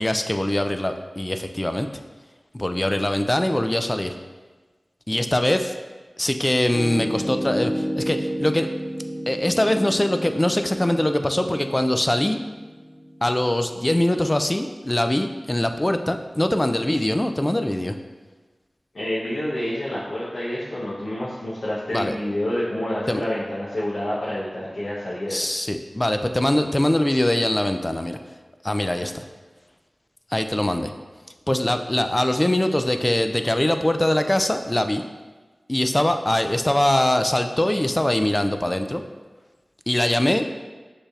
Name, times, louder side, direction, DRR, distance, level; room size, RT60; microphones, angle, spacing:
voice 1, 0.0-1.9 2.5-4.1 5.1-5.7 6.2-8.7 9.3-12.4 13.2-18.0 21.9-22.2 23.1-23.2 25.3-28.2 28.6-29.3 30.3-30.9 31.5-35.0 35.7-39.0 39.9-40.5, left 1 dB, 25° left, 7 dB, 0.3 m, -22 dB
Piano, 6.7-14.6, equal, 40° left, 1.0 m, -32 dB
voice 2, 18.9-25.4, left 1 dB, 75° left, -8 dB, 0.8 m, -28 dB
6.4 x 3.3 x 2.4 m, 1.3 s
wide cardioid pair, 45°, 0 cm